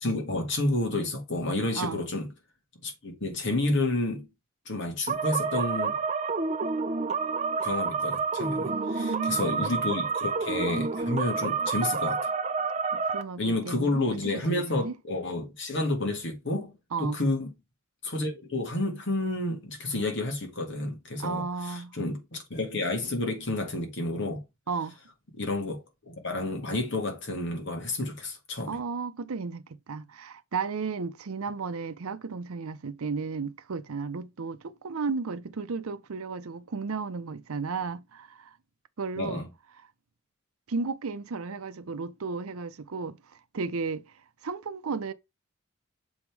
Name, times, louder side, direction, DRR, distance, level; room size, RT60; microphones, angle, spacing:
voice 1, 0.0-2.3 2.8-4.3 4.7-6.0 7.6-12.2 13.4-16.7 17.0-17.5 18.0-24.4 25.4-28.8 39.2-39.5, left 2 dB, 55° left, 2.0 m, -30 dB
sound 1, 5.1-13.2, right 4 dB, 30° right, 0.5 m, -29 dB
voice 2, 8.7-9.5 12.9-14.0 14.5-15.0 16.9-17.2 21.2-22.0 24.7-25.0 28.7-38.6 39.0-39.4 40.7-44.0 44.4-45.1, right 4 dB, 80° right, 0.6 m, -34 dB
7.0 x 3.6 x 4.6 m
head